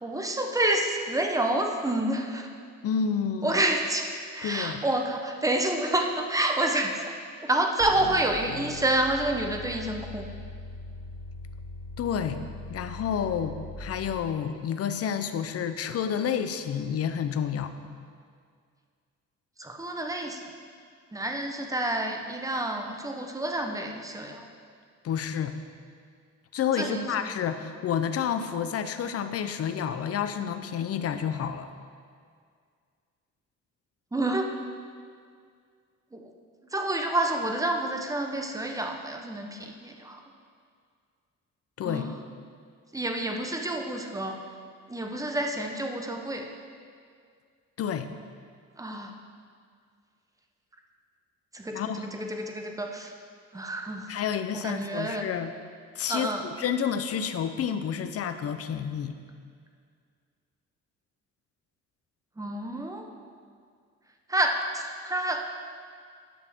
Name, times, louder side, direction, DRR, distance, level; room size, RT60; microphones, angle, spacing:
voice 1, 0.0-2.5 3.4-7.1 7.4-10.3 19.6-20.4 21.1-24.4 26.8-27.3 34.1-34.5 36.1-36.2 36.7-40.2 41.8-42.1 42.9-44.4 44.9-46.5 48.8-49.1 51.5-53.1 53.5-54.1 54.5-55.2 56.1-56.5 62.4-63.0 64.3-65.4, right 1 dB, 10° right, 3 dB, 0.8 m, -28 dB
voice 2, 2.8-3.6 4.4-4.8 12.0-12.4 12.7-17.7 25.0-25.6 26.5-31.7 41.8-42.1 47.8-48.1 51.7-52.1 54.1-55.5 56.0-59.2, left 8 dB, 50° left, 9 dB, 0.6 m, -29 dB
sound 1, 7.8-14.0, left 2 dB, 35° left, 1.6 m, -40 dB
10.0 x 6.5 x 3.5 m, 2.1 s
cardioid pair, 90°, 30 cm